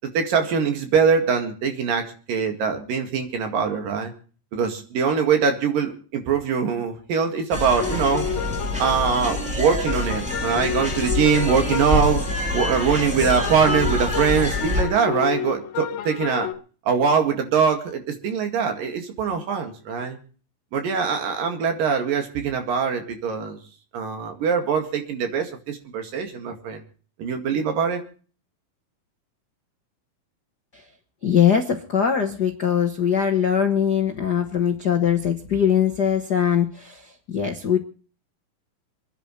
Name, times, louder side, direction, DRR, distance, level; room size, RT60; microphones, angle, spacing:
voice 1, 0.1-4.1 4.5-8.3 8.8-12.3 12.5-16.5 16.9-20.2 20.7-23.6 23.9-26.8 27.2-28.0, right 6 dB, 75° right, 5 dB, 3.8 m, -23 dB
sound 1, 7.5-14.8, left 1 dB, 5° right, 1.8 m, -26 dB
sound 2, 7.8-16.5, left 11 dB, 85° left, 2.7 m, -31 dB
voice 2, 31.2-37.8, left 8 dB, 70° left, 4 dB, 0.9 m, -21 dB
28.0 x 10.0 x 3.2 m, 0.41 s
omnidirectional pair, 4.0 m